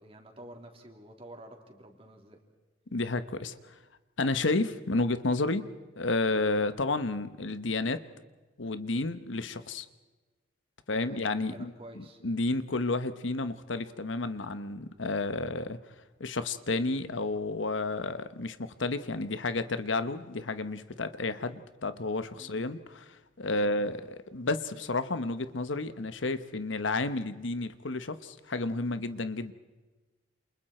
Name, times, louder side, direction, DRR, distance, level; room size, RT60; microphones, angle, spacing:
voice 1, 0.0-2.4 10.9-11.2 11.5-12.2 22.4-22.5 23.4-23.7, right 1 dB, 30° right, 2 dB, 3.3 m, -49 dB
voice 2, 2.9-3.7 4.2-8.0 8.6-9.9 10.9-15.8 16.2-29.5, left 2 dB, 90° left, 11 dB, 1.1 m, -31 dB
29.0 x 28.0 x 4.5 m, 1.3 s
head